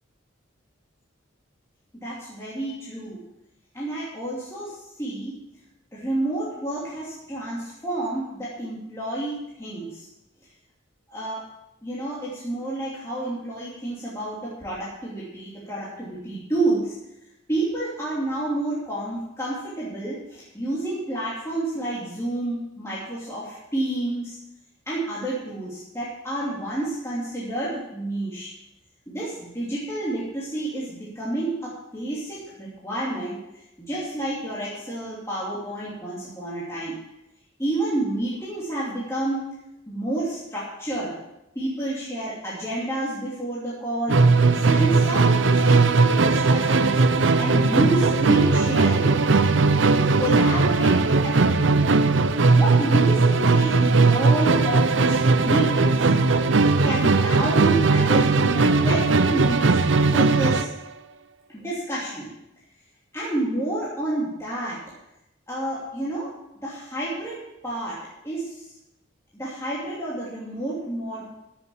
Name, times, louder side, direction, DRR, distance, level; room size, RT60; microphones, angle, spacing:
voice 1, 2.0-3.2 3.7-5.4 5.9-10.1 11.1-11.5 11.8-16.9 17.5-24.4 24.9-28.5 29.1-37.0 37.6-39.4 39.9-41.2 41.5-44.3 44.6-47.0 47.4-49.1 50.0-51.9 52.5-56.1 56.8-59.8 60.1-60.7 61.5-62.3 63.1-64.8 65.5-66.3 66.6-67.4 67.6-68.6 69.3-71.2, right 1 dB, 15° left, -8 dB, 2.9 m, -29 dB
Musical instrument, 44.1-60.8, right 3 dB, 75° right, 0.7 m, -19 dB
15.0 x 7.1 x 7.2 m, 0.90 s
head